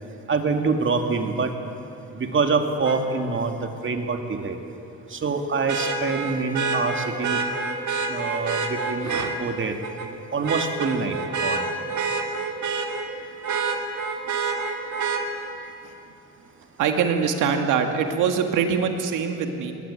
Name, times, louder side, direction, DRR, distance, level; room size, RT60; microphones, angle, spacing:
voice 1, 0.3-1.5 2.1-4.6 5.1-7.4 8.1-9.1 9.4-9.7 10.3-11.6, right 4 dB, 40° right, 5 dB, 2.5 m, -25 dB
Vehicle horn car horn honking, 2.8-3.0 5.7-9.3 9.8-10.1 10.4-13.1 13.4-15.2 17.1-17.2, right 4 dB, 75° right, 2.5 m, -27 dB
voice 2, 16.8-19.7, right 6 dB, 90° right, 5 dB, 2.1 m, -23 dB
20.5 x 20.0 x 9.0 m, 3.0 s
cardioid pair, 90°, 30 cm